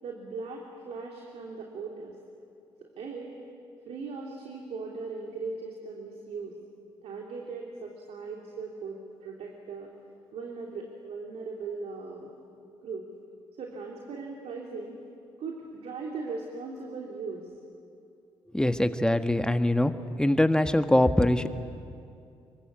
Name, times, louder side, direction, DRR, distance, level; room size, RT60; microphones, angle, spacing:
voice 1, 0.0-2.2 3.0-3.3 3.9-6.6 7.0-9.9 10.3-12.3 12.8-13.1 13.6-15.0 15.4-17.5, right 4 dB, 60° right, 0 dB, 3.1 m, -38 dB
voice 2, 18.5-19.9 20.2-21.5, left 1 dB, 5° left, 9 dB, 1.6 m, -23 dB
27.0 x 23.5 x 8.3 m, 2.5 s
hypercardioid pair, 45°, 12 cm